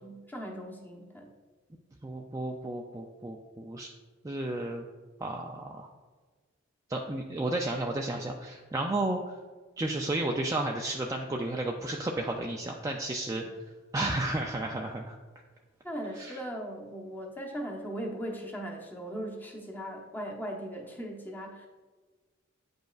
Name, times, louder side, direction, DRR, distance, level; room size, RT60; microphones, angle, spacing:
voice 1, 0.0-1.3 15.8-21.7, equal, 10° left, -1 dB, 0.9 m, -38 dB
voice 2, 2.0-3.9 4.2-4.8 5.2-5.9 6.9-9.4 9.8-13.4 13.9-15.2 16.2-16.4, right 2 dB, 15° right, 1 dB, 0.3 m, -32 dB
8.9 x 5.2 x 2.4 m, 1.4 s
head